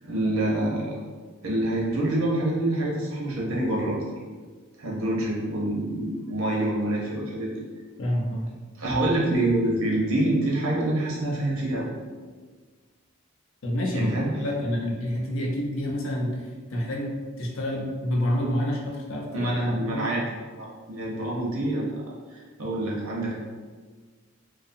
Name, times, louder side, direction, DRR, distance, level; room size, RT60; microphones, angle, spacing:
voice 1, 0.0-1.0 1.4-4.0 4.8-7.5 8.8-11.9 13.9-14.3 19.3-20.2 20.6-21.9 22.3-23.3, right 1 dB, 70° right, -4 dB, 0.7 m, -26 dB
voice 2, 8.0-8.5 13.6-19.5 19.8-20.1, equal, 65° left, -1 dB, 0.5 m, -28 dB
2.6 x 2.3 x 2.5 m, 1.5 s
head